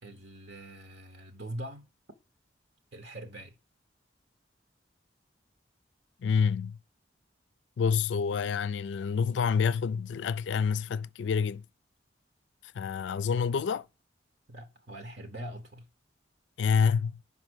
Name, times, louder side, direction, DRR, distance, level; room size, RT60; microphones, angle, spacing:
voice 1, 0.0-1.9 2.9-3.5 14.5-15.9, right 1 dB, 65° right, 0.9 m, -42 dB
voice 2, 6.2-6.8 7.8-11.6 12.8-13.8 16.6-17.1, left 6 dB, 80° left, 0.3 m, -27 dB
5.5 x 5.4 x 6.1 m
head